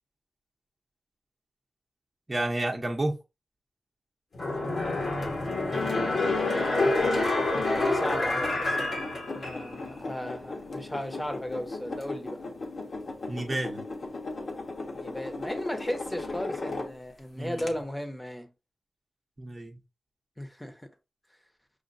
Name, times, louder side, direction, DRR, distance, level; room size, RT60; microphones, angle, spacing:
voice 1, 2.3-3.2 13.3-13.8 17.3-17.7 19.4-19.8, right 1 dB, 25° right, 0.8 m, -30 dB
sound 1, 4.3-9.9 10.3-10.4, left 2 dB, 75° left, 1.4 m, -27 dB
voice 2, 4.4-5.1 7.5-9.0 9.3-12.4 14.9-18.5 20.4-20.9, equal, 10° left, 0.9 m, -36 dB
sound 2, 6.7-17.2 17.6-17.7, left 2 dB, 55° left, 1.1 m, -38 dB
6.3 x 2.4 x 2.6 m
wide cardioid pair, 80°, 0 cm